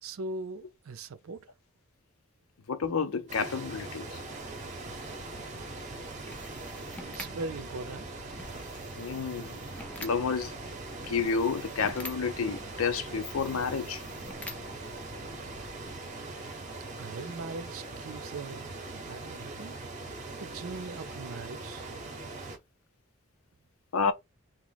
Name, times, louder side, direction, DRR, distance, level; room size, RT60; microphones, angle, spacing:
voice 1, 0.0-1.5 7.0-8.1 17.0-19.8 20.4-21.9, right 3 dB, 75° right, 0.5 m, -40 dB
voice 2, 2.7-4.2 9.0-9.6 10.0-10.6 11.0-14.0 23.9-24.1, left 5 dB, 80° left, 0.6 m, -30 dB
sound 1, 3.3-22.6, right 2 dB, 35° right, 0.8 m, -41 dB
sound 2, 4.2-16.2, left 1 dB, 5° left, 0.4 m, -48 dB
3.0 x 2.1 x 3.9 m
head